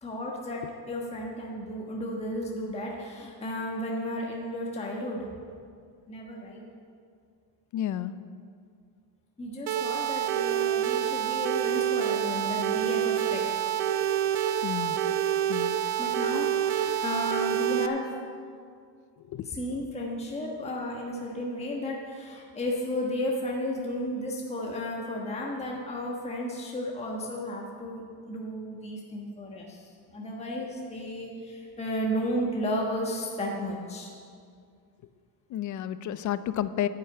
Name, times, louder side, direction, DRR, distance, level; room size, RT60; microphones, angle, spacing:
voice 1, 0.0-5.3 6.1-6.6 9.4-13.5 16.0-18.1 19.4-34.1, left 1 dB, 15° left, -2 dB, 1.3 m, -33 dB
voice 2, 7.7-8.1 14.6-15.0 15.5-15.7 19.3-19.5 35.5-36.9, left 11 dB, 40° left, 14 dB, 0.5 m, -31 dB
sound 1, 9.7-17.9, right 10 dB, 60° right, 0.8 m, -27 dB
10.5 x 8.4 x 7.8 m, 2.2 s
cardioid pair, 140°, 48 cm